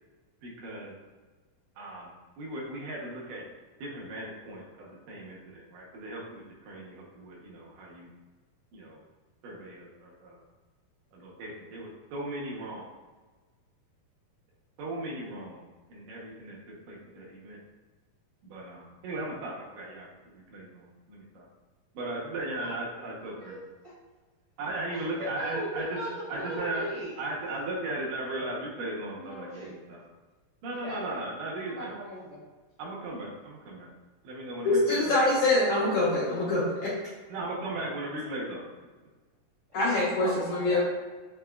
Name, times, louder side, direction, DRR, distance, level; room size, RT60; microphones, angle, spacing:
voice 1, 0.4-0.9 1.8-2.1 2.4-3.4 3.8-8.1 8.7-9.0 9.4-10.4 11.1-12.9 14.8-17.6 18.4-21.5 21.9-23.6 24.6-26.0 26.3-26.9 27.2-30.0 30.6-32.0 32.8-33.9 34.2-35.3 37.3-38.7, right 2 dB, 70° right, -3 dB, 2.3 m, -37 dB
voice 2, 23.2-23.9 24.9-27.1 29.1-29.8 30.7-31.0 31.6-32.4 40.0-40.8, equal, 90° right, -13 dB, 0.8 m, -39 dB
voice 3, 34.6-36.6 39.7-40.8, left 2 dB, 80° left, -9 dB, 1.4 m, -24 dB
5.9 x 2.9 x 2.3 m, 1.3 s
omnidirectional pair, 4.1 m